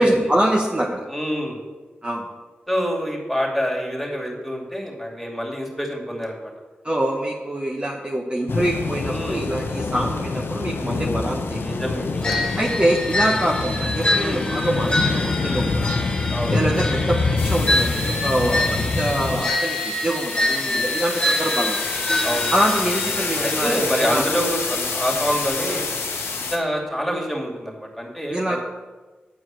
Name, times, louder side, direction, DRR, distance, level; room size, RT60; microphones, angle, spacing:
voice 1, 0.0-1.1 2.0-2.3 6.8-11.6 12.6-16.1 16.5-21.8 22.5-24.2 28.3-28.6, right 1 dB, 25° right, -1 dB, 1.2 m, -24 dB
voice 2, 1.1-1.6 2.7-6.5 9.1-9.5 11.6-12.5 14.2-14.4 16.3-16.6 18.5-18.7 20.4-20.9 22.2-22.5 23.4-25.9 26.5-28.6, equal, ahead, -2 dB, 2.6 m, -26 dB
sound 1, 8.5-19.5, left 3 dB, 70° left, 0.7 m, -25 dB
sound 2, 12.2-23.6, left 1 dB, 20° left, 2.1 m, -26 dB
sound 3, 17.4-26.6, left 4 dB, 90° left, 1.1 m, -29 dB
9.4 x 4.7 x 7.6 m, 1.3 s
cardioid pair, 45°, 4 cm